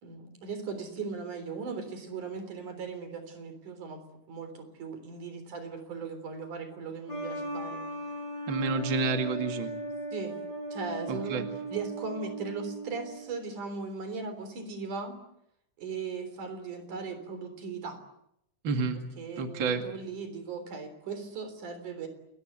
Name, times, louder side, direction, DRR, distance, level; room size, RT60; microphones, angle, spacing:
voice 1, 0.0-7.8 10.1-10.4 10.7-11.4 11.7-15.2 15.8-18.0 19.2-22.1, right 4 dB, 75° right, 9 dB, 5.2 m, -38 dB
sound 1, 7.1-13.4, right 1 dB, 30° left, 7.1 m, -37 dB
voice 2, 8.5-9.7 11.1-11.5 18.6-19.0 19.4-19.8, right 4 dB, 40° right, 5 dB, 2.6 m, -29 dB
29.0 x 21.5 x 8.1 m, 0.78 s
omnidirectional pair, 3.5 m